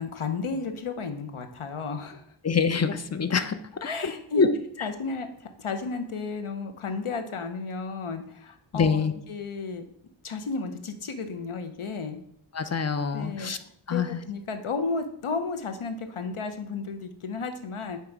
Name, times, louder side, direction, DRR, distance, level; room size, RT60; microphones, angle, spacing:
voice 1, 0.0-2.2 3.8-4.5 4.8-9.8 10.2-12.2 13.1-13.5 13.9-18.0, left 4 dB, 80° left, 7 dB, 0.8 m, -33 dB
voice 2, 2.4-3.6 4.0-4.5 8.7-9.1 12.5-13.6 13.9-14.2, left 5 dB, 35° left, 11 dB, 0.5 m, -25 dB
8.6 x 3.1 x 4.6 m, 0.69 s
wide cardioid pair, 55°, 49 cm